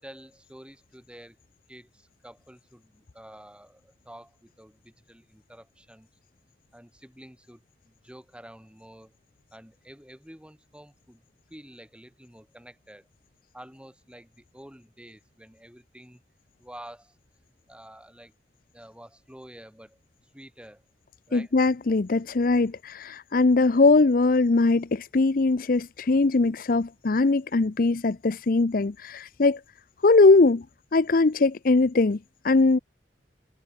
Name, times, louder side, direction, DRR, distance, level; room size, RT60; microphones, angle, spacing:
voice 1, 0.0-1.4 1.7-6.1 6.7-9.2 9.5-11.2 11.5-13.1 13.5-16.2 16.6-17.1 17.7-18.3 18.7-20.0 20.3-20.8 21.3-21.5, equal, 5° right, 5.9 m, -49 dB
voice 2, 21.3-29.6 30.0-30.6 30.9-32.2 32.4-32.8, left 3 dB, 50° left, 0.6 m, -21 dB
head